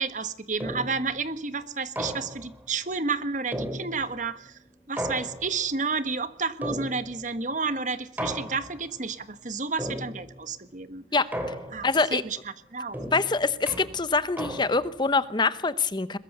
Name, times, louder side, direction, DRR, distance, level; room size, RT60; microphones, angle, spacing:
voice 1, 0.0-4.6 4.9-11.0 11.7-11.8 12.1-13.0, right 4 dB, 45° right, 11 dB, 1.5 m, -31 dB
sound 1, 0.6-1.1 2.0-2.6 3.5-4.3 5.0-5.8 6.6-7.3 8.2-8.9 9.8-10.4 11.3-12.0 12.9-15.0, equal, 10° right, 3.3 m, -35 dB
voice 2, 11.8-12.2 13.1-16.2, left 4 dB, 25° left, 14 dB, 0.9 m, -24 dB
22.0 x 21.5 x 6.8 m, 0.62 s
head